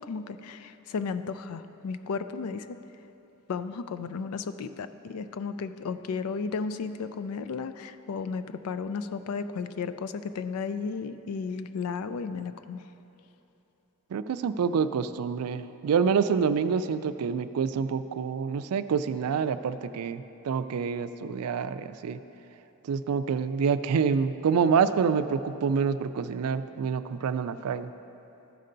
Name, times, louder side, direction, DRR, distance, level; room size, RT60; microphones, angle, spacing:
voice 1, 0.0-2.8 3.5-12.8, left 5 dB, 80° left, 12 dB, 0.4 m, -34 dB
voice 2, 14.1-22.2 22.9-27.9, right 6 dB, 90° right, 12 dB, 0.4 m, -27 dB
13.5 x 5.5 x 3.9 m, 2.9 s
head